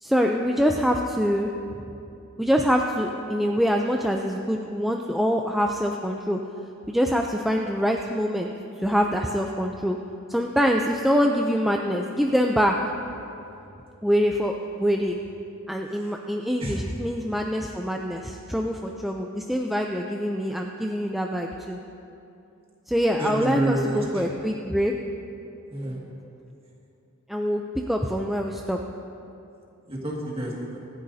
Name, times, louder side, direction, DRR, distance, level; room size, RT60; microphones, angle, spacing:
voice 1, 0.0-1.5 2.4-6.4 6.9-8.5 8.8-10.0 10.3-12.8 14.0-14.5 14.8-15.2 15.7-21.8 22.9-24.9 27.3-27.6 27.9-28.8, equal, ahead, 1 dB, 0.4 m, -24 dB
voice 2, 23.2-24.0 25.7-26.0 29.9-30.8, right 1 dB, 25° right, -3 dB, 2.0 m, -28 dB
25.0 x 10.5 x 2.7 m, 2.8 s
head